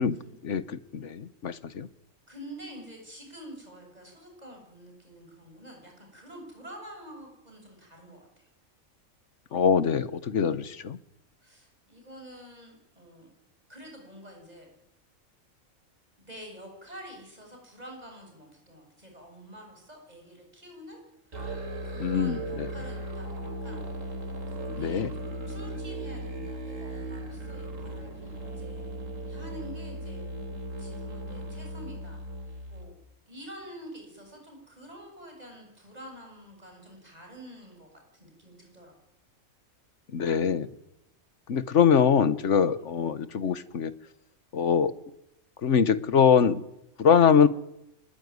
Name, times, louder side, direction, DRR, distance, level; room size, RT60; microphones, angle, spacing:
voice 1, 0.4-1.9 9.5-11.0 22.0-22.7 24.8-25.1 40.1-40.7 41.5-43.9 44.5-44.9 45.6-46.6 47.0-47.5, left 7 dB, 60° left, 15 dB, 1.4 m, -23 dB
voice 2, 2.3-8.5 11.4-13.3 13.7-14.7 16.2-21.0 21.4-24.2 24.5-28.8 29.3-30.5 30.8-32.2 32.4-32.9 33.3-37.9 38.2-39.0, equal, 30° right, 2 dB, 7.7 m, -47 dB
Musical instrument, 21.3-32.9, right 1 dB, 70° right, 3.8 m, -37 dB
25.0 x 21.0 x 9.6 m, 0.87 s
omnidirectional pair, 1.4 m